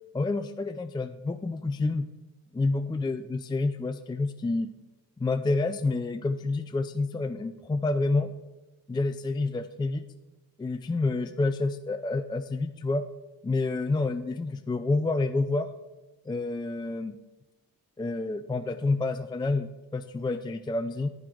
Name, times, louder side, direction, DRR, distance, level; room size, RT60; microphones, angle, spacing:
voice 1, 0.1-2.1 2.5-4.7 5.2-8.3 8.9-10.0 10.6-13.0 13.4-15.7 16.3-17.1 18.0-21.1, left 3 dB, 15° left, 8 dB, 0.4 m, -28 dB
10.5 x 9.4 x 3.8 m, 1.1 s
cardioid pair, 95°, 35 cm